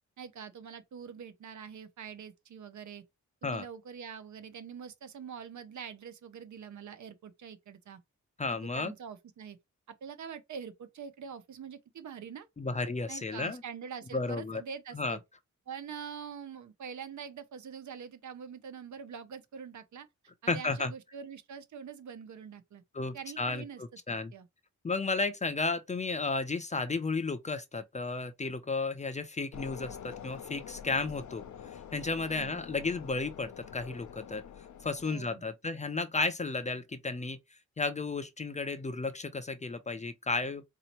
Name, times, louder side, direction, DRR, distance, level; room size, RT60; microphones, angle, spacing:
voice 1, 0.2-3.0 3.4-8.0 8.5-9.6 9.9-12.5 13.1-15.2 15.7-20.1 20.4-22.8 23.1-23.8 24.1-24.5 32.3-32.6 35.0-35.4, right 7 dB, 70° right, 0.7 m, -44 dB
voice 2, 8.4-8.9 12.6-13.6 14.1-14.6 14.9-15.2 20.5-20.9 22.9-23.6 24.1-24.3 24.8-31.4 31.9-34.4 34.8-37.4 37.8-40.6, left 3 dB, 25° left, 0.4 m, -33 dB
sound 1, 29.5-35.2, left 8 dB, 70° left, 0.6 m, -46 dB
4.0 x 2.8 x 2.9 m
wide cardioid pair, 160°, 30 cm